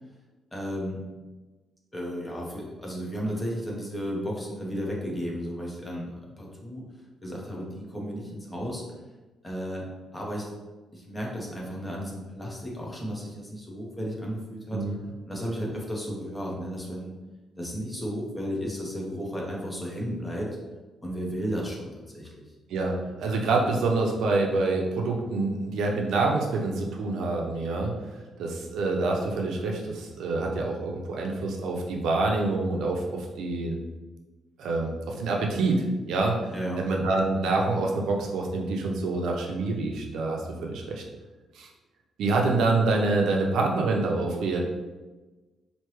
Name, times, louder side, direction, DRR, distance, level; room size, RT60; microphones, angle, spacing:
voice 1, 0.5-1.0 1.9-6.8 7.2-8.8 9.4-9.8 10.1-10.5 10.9-14.8 15.3-17.1 17.6-20.5 21.0-22.5 36.5-36.8, equal, 10° left, -3 dB, 0.8 m, -33 dB
voice 2, 22.7-27.9 28.4-33.8 34.6-41.0 41.5-41.7 42.2-44.6, right 3 dB, 75° right, 1 dB, 0.6 m, -26 dB
4.5 x 2.8 x 3.1 m, 1.2 s
cardioid pair, 165°, 0 cm